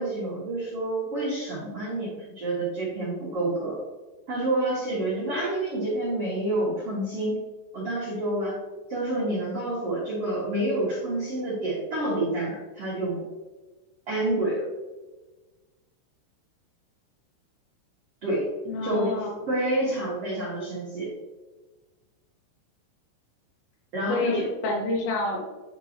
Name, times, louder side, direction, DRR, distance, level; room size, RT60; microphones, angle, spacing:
voice 1, 0.0-3.8 4.3-7.4 7.7-8.6 8.9-13.2 14.1-14.6 18.2-18.5 18.8-21.1 23.9-24.5, right 1 dB, 80° right, -7 dB, 1.3 m, -28 dB
voice 2, 18.7-19.4 24.1-25.4, left 2 dB, 80° left, -1 dB, 4.0 m, -28 dB
10.5 x 4.3 x 2.9 m, 1.2 s
omnidirectional pair, 5.7 m